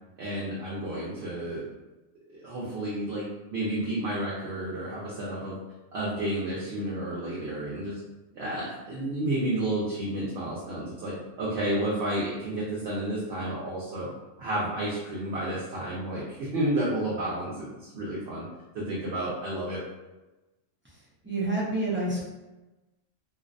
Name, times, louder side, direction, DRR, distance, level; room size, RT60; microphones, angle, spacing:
voice 1, 0.2-1.6 2.3-5.6 5.9-8.0 8.3-14.1 14.4-18.4 18.7-19.8, right 1 dB, 65° right, -7 dB, 0.8 m, -31 dB
voice 2, 21.2-22.2, right 2 dB, 20° right, -8 dB, 0.3 m, -28 dB
2.5 x 2.0 x 2.4 m, 1.1 s
omnidirectional pair, 1.3 m